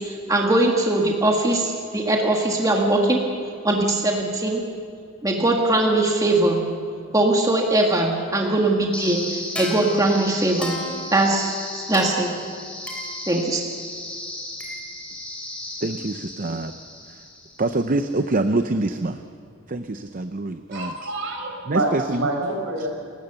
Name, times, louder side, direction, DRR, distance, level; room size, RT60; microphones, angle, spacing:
voice 1, 0.0-3.2 3.6-4.6 5.2-6.6 7.1-10.8 11.1-12.3 13.3-13.6, right 2 dB, 15° right, 0 dB, 1.7 m, -21 dB
sound 1, 8.9-18.0, left 1 dB, 5° left, 3.3 m, -34 dB
voice 2, 15.8-16.7 17.6-19.2 19.7-21.1 21.7-22.3 22.8-22.9, right 2 dB, 40° right, 8 dB, 0.6 m, -25 dB
voice 3, 20.7-22.9, right 2 dB, 60° right, 2 dB, 4.6 m, -27 dB
29.5 x 15.5 x 6.9 m, 2.3 s
head